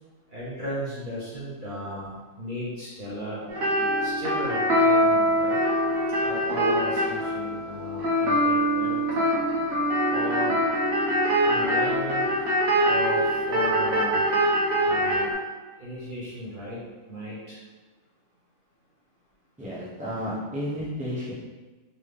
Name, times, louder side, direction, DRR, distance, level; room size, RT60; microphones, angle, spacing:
voice 1, 0.3-2.1 2.4-3.4 4.0-5.6 6.2-9.0 10.1-10.6 11.4-12.3 12.8-13.2 13.5-14.2 14.8-15.3 15.8-16.8 17.1-17.6, equal, 40° right, -8 dB, 1.1 m, -35 dB
sound 1, 3.5-15.3, equal, 85° right, 1.3 m, -23 dB
voice 2, 19.6-21.3, equal, 5° right, -8 dB, 0.9 m, -32 dB
4.0 x 3.0 x 3.3 m, 1.3 s
omnidirectional pair, 1.4 m